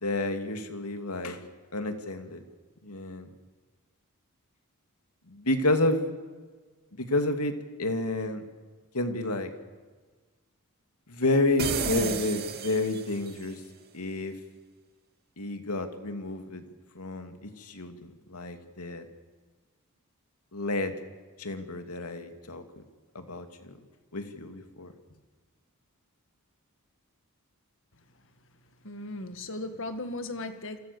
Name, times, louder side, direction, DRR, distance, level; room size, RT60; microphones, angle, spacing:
voice 1, 0.0-1.4 1.7-2.4 2.8-3.3 5.3-6.1 6.9-7.5 7.8-8.4 8.9-9.5 11.1-13.6 13.9-14.4 15.4-16.6 16.9-19.1 20.5-21.0 21.4-22.8 23.1-23.8 24.1-24.9, left 2 dB, 85° left, 7 dB, 2.7 m, -30 dB
sound 1, 11.6-13.4, right 5 dB, 45° right, 2.4 m, -32 dB
voice 2, 28.8-30.8, left 2 dB, 60° left, 8 dB, 1.9 m, -36 dB
29.0 x 26.0 x 7.1 m, 1.4 s
head